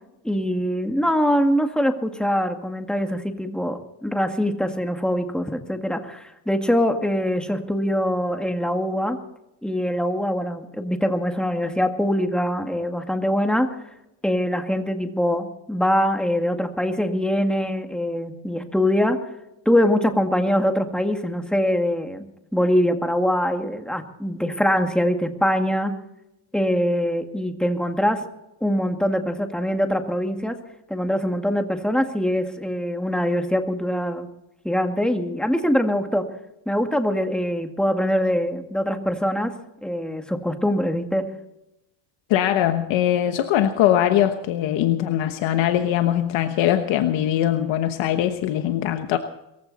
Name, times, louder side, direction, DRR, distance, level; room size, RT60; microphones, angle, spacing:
voice 1, 0.2-9.2 9.6-13.7 14.2-19.2 19.7-22.3 22.5-25.9 26.5-28.2 28.6-30.6 30.9-34.3 34.6-36.2 36.7-39.5 39.8-41.3, equal, ahead, 5 dB, 2.1 m, -23 dB
voice 2, 42.3-49.2, left 11 dB, 80° left, 7 dB, 1.2 m, -21 dB
22.5 x 15.5 x 4.2 m, 0.89 s
cardioid pair, 110°, 45 cm